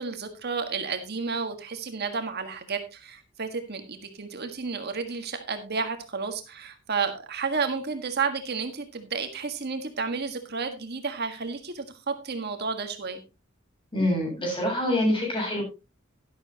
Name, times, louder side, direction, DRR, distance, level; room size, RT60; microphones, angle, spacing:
voice 1, 0.0-13.2, right 5 dB, 50° right, 6 dB, 1.6 m, -31 dB
voice 2, 13.9-15.6, left 1 dB, 25° left, -1 dB, 7.0 m, -25 dB
12.0 x 11.5 x 2.9 m, 0.28 s
head